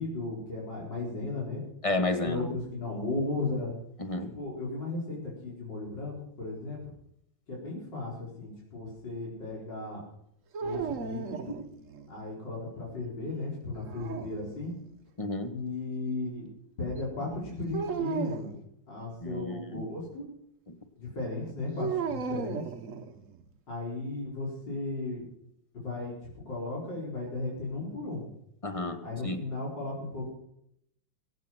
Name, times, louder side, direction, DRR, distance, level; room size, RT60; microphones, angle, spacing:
voice 1, 0.0-1.6 2.2-3.7 4.3-6.9 7.5-10.0 10.6-11.6 12.1-14.7 15.5-16.5 16.8-18.6 18.9-20.2 21.0-22.6 23.7-25.2 25.7-28.3 29.0-30.3, left 2 dB, 65° left, -5 dB, 5.3 m, -35 dB
voice 2, 1.8-2.4 4.0-4.3 15.2-15.5 19.2-19.8 28.6-29.0 29.2-29.4, left 2 dB, 20° left, 7 dB, 1.3 m, -31 dB
sound 1, 10.5-12.1 13.7-14.9 17.7-18.5 21.8-23.4, right 6 dB, 50° right, 1.3 m, -35 dB
23.5 x 8.5 x 6.0 m, 0.75 s
omnidirectional pair, 2.1 m